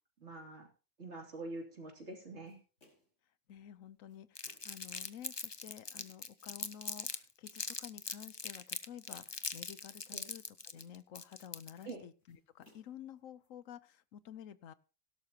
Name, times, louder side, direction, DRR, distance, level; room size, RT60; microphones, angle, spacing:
voice 1, 0.2-0.7 1.0-2.6 10.1-10.3 11.8-12.0, right 2 dB, 60° right, 1 dB, 3.2 m, -45 dB
sound 1, 2.5-3.2 3.8-4.8 5.4-6.4 6.9-7.8 8.5-9.6 10.1-11.2 11.4-13.5, left 1 dB, 70° left, 5.6 m, -70 dB
voice 2, 3.5-14.7, left 9 dB, 90° left, 15 dB, 1.2 m, -51 dB
Crumpling crinkling, 4.3-7.2 7.5-11.9, left 4 dB, 25° left, 0.6 m, -41 dB
17.0 x 11.5 x 2.9 m, 0.34 s
omnidirectional pair, 1.3 m